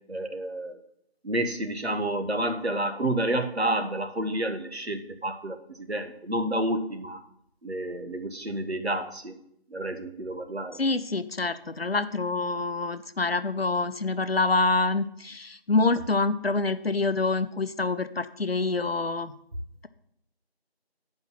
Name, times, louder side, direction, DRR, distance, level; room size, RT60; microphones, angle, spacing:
voice 1, 0.1-0.8 1.2-7.2 7.6-9.3 9.7-10.8, right 1 dB, 85° right, 6 dB, 1.3 m, -30 dB
voice 2, 10.7-19.4, left 3 dB, 70° left, 12 dB, 0.7 m, -26 dB
8.0 x 5.2 x 7.3 m, 0.72 s
figure-of-eight pair, 175°, 31 cm